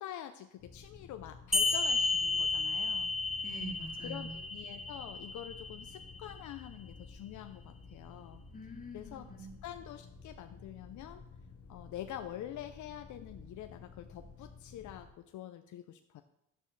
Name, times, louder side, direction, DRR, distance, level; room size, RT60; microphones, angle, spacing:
voice 1, 0.0-3.1 4.0-8.4 8.9-11.2 11.7-16.2, left 11 dB, 75° left, 7 dB, 0.6 m, -46 dB
sound 1, 0.6-15.1, left 4 dB, 50° left, 1.3 m, -53 dB
sound 2, 1.5-6.5, left 3 dB, ahead, 1.0 m, -33 dB
voice 2, 3.4-4.4 8.5-9.5, equal, 30° left, -2 dB, 2.4 m, -44 dB
11.0 x 9.2 x 3.3 m, 0.80 s
cardioid pair, 90°, 30 cm